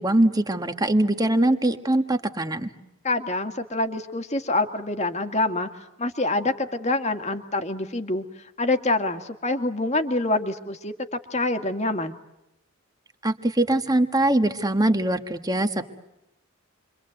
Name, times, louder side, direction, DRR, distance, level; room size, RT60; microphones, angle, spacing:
voice 1, 0.0-2.7 13.2-15.9, right 1 dB, 15° right, 7 dB, 1.6 m, -22 dB
voice 2, 3.0-5.7 6.0-8.2 8.6-12.2, left 2 dB, 30° left, 7 dB, 1.9 m, -26 dB
29.0 x 24.5 x 7.9 m, 0.90 s
head